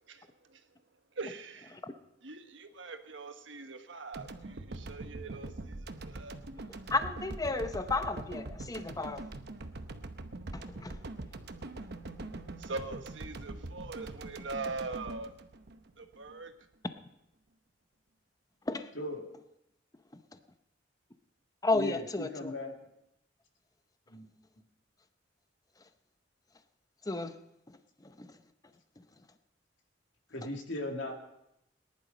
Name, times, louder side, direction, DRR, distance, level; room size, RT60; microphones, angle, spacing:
voice 1, 0.1-0.6 1.2-1.8 2.2-6.4 12.6-15.3 16.0-16.5, right 3 dB, 80° right, 1.3 m, -42 dB
sound 1, 4.1-16.3, right 2 dB, 60° right, 0.9 m, -43 dB
voice 2, 6.9-9.2 10.5-11.0 18.7-18.9 21.6-22.5 27.1-27.3 28.2-28.3, left 3 dB, 20° left, 0.7 m, -32 dB
voice 3, 21.7-22.7 24.1-24.3 30.3-31.1, left 1 dB, 85° left, 2.3 m, -37 dB
19.0 x 11.0 x 5.2 m
head